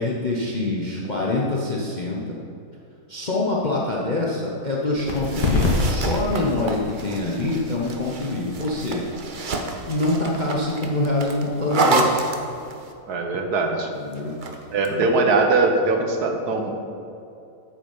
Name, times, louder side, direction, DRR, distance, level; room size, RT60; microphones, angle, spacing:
voice 1, 0.0-2.4 3.1-9.1 9.9-12.2 13.7-14.4 14.9-15.0, left 2 dB, 30° left, -3 dB, 0.9 m, -25 dB
sound 1, 4.9-12.3, left 2 dB, 75° left, 2.0 m, -29 dB
sound 2, 5.1-12.9 14.1-14.9, right 3 dB, 45° right, 0.6 m, -29 dB
voice 2, 13.1-13.9 14.7-16.7, right 3 dB, 65° right, 4 dB, 1.4 m, -21 dB
8.9 x 8.1 x 5.6 m, 2.7 s
omnidirectional pair, 1.9 m